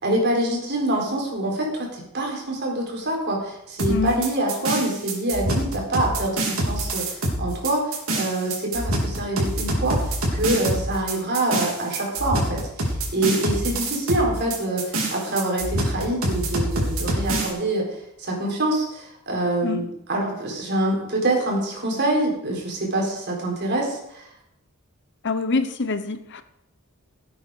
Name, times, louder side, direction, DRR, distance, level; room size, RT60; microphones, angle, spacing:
voice 1, 0.0-24.3, right 1 dB, 50° right, 0 dB, 4.3 m, -25 dB
sound 1, 3.8-17.5, right 1 dB, 70° right, 3.4 m, -26 dB
voice 2, 25.2-26.4, left 4 dB, 55° left, 11 dB, 0.9 m, -25 dB
17.0 x 8.9 x 5.0 m, 0.77 s
head